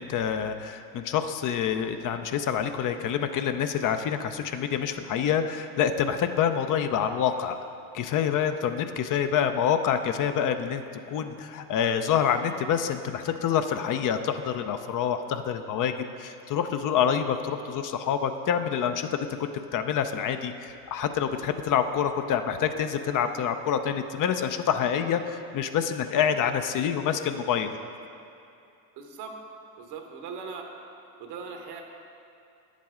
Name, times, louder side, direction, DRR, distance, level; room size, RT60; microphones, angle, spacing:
voice 1, 0.0-7.6 7.9-10.8 11.1-15.9 16.2-19.1 19.7-27.7, left 8 dB, 50° left, 8 dB, 0.6 m, -27 dB
voice 2, 29.0-29.4 29.8-30.7 31.2-31.8, right 5 dB, 75° right, 3 dB, 1.2 m, -39 dB
9.3 x 7.4 x 3.7 m, 2.6 s
supercardioid pair, 85°, 40 cm